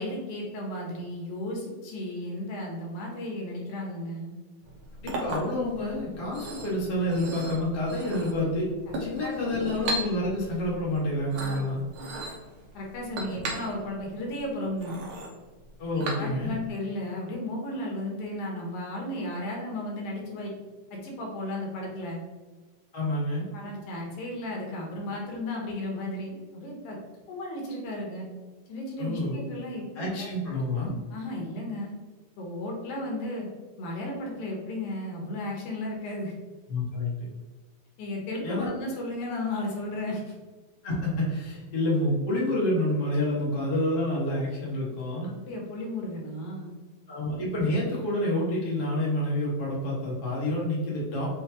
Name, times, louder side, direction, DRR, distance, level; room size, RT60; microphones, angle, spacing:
voice 1, 0.0-4.3 8.9-9.6 11.4-11.9 12.7-15.0 15.9-20.5 20.9-22.2 23.5-27.0 27.3-28.3 28.7-30.3 31.1-31.9 32.4-33.5 33.8-36.3 38.0-40.3 45.2-46.7, left 1 dB, 80° left, -1 dB, 2.5 m, -34 dB
Chink clink, 4.6-16.7, right 2 dB, 70° right, 1.3 m, -37 dB
voice 2, 5.0-8.7 9.0-11.8 15.8-16.6 22.9-23.5 29.0-29.4 29.9-30.9 36.7-37.1 38.4-38.7 40.8-45.3 47.1-51.3, left 1 dB, 55° left, -5 dB, 0.6 m, -28 dB
6.3 x 2.7 x 2.8 m, 1.3 s
omnidirectional pair, 3.4 m